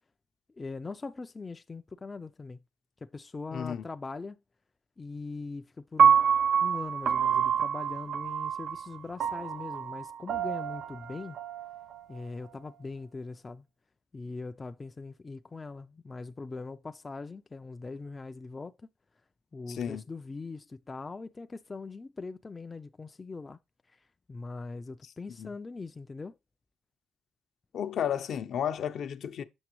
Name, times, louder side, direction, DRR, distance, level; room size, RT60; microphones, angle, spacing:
voice 1, 0.6-2.6 3.0-4.4 5.0-6.2 6.6-11.4 12.1-13.7 14.1-18.7 19.5-23.6 23.9-24.0 24.3-26.4, left 3 dB, 25° left, 0.4 m, -41 dB
voice 2, 3.5-3.8 19.7-20.0 25.4-25.5 27.7-29.4, left 9 dB, 65° left, 0.6 m, -32 dB
Piano, 6.0-12.2, right 7 dB, 60° right, 0.3 m, -27 dB
7.1 x 5.8 x 3.0 m
cardioid pair, 90°, 0 cm